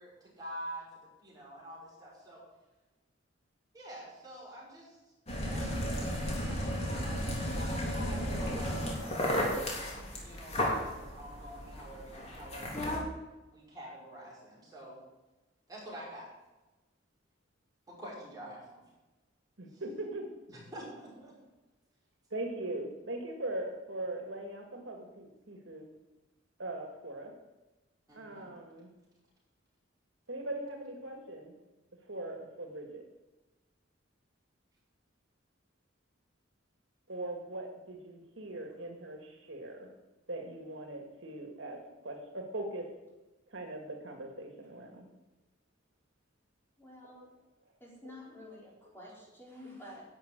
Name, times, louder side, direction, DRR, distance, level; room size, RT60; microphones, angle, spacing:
voice 1, 0.0-2.4 3.7-5.0 5.5-5.7 6.2-9.6 10.2-13.0 13.5-15.0 15.7-16.3 17.9-18.8 19.7-19.8 20.5-21.4 28.1-28.5, right 1 dB, 20° right, -6 dB, 5.8 m, -47 dB
sound 1, 5.3-13.0, equal, 35° left, 3.3 m, -34 dB
voice 2, 19.6-20.3 22.3-25.8 26.6-27.4 28.1-28.9 30.3-31.5 32.0-33.1 37.1-39.9 40.3-42.9 43.5-45.1 47.0-47.1, right 1 dB, 75° right, 2 dB, 2.1 m, -40 dB
voice 3, 46.8-47.2 47.8-50.0, left 1 dB, 10° left, -4 dB, 4.1 m, -50 dB
11.5 x 7.0 x 9.1 m, 1.1 s
head